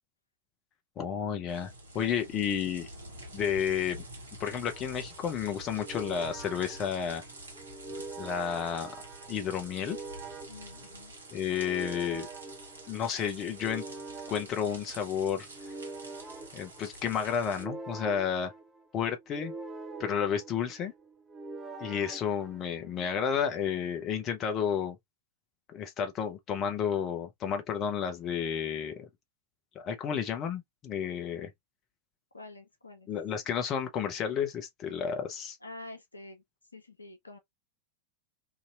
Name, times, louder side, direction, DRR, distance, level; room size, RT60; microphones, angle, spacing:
voice 1, 1.0-2.9 3.3-4.0 4.4-7.2 8.2-8.9 9.3-10.0 11.3-12.3 12.9-13.8 14.3-15.5 16.5-18.5 18.9-19.5 20.0-20.9 21.8-25.0 25.7-29.1 29.7-31.5 33.1-35.6, left 8 dB, 30° left, 0.7 m, -31 dB
sound 1, 1.5-17.6, right 1 dB, 70° right, 1.1 m, -48 dB
voice 2, 1.9-2.3 10.5-11.1 32.3-33.1 35.6-36.4 36.7-37.4, left 2 dB, 80° left, 0.8 m, -47 dB
sound 2, 4.7-23.1, right 3 dB, 15° right, 0.7 m, -45 dB
2.9 x 2.7 x 2.4 m
figure-of-eight pair, 90°, 0 cm